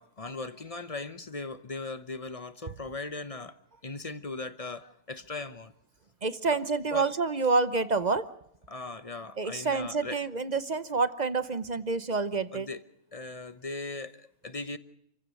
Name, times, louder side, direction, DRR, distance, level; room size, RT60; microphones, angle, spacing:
voice 1, 0.0-3.6 3.8-5.7 6.5-6.6 6.9-7.1 8.7-10.2 12.5-12.8 13.1-14.8, left 3 dB, 30° left, 12 dB, 0.9 m, -38 dB
voice 2, 6.2-8.3 9.4-12.7, right 4 dB, 35° right, 13 dB, 0.8 m, -28 dB
28.0 x 16.0 x 6.4 m, 0.76 s
omnidirectional pair, 1.6 m